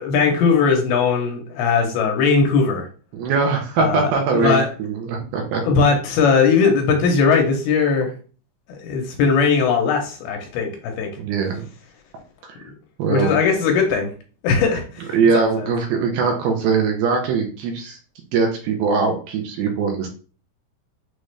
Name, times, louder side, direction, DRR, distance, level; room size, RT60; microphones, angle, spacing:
voice 1, 0.0-2.9 3.8-4.7 5.6-8.1 8.8-11.2 13.1-14.1 14.4-15.5, left 5 dB, 80° left, 3 dB, 2.5 m, -19 dB
voice 2, 3.1-5.6 11.2-11.7 12.4-12.6 13.0-13.3 15.1-18.0 18.3-20.1, right 5 dB, 80° right, 2 dB, 2.5 m, -21 dB
6.4 x 2.4 x 3.2 m, 0.39 s
omnidirectional pair, 4.6 m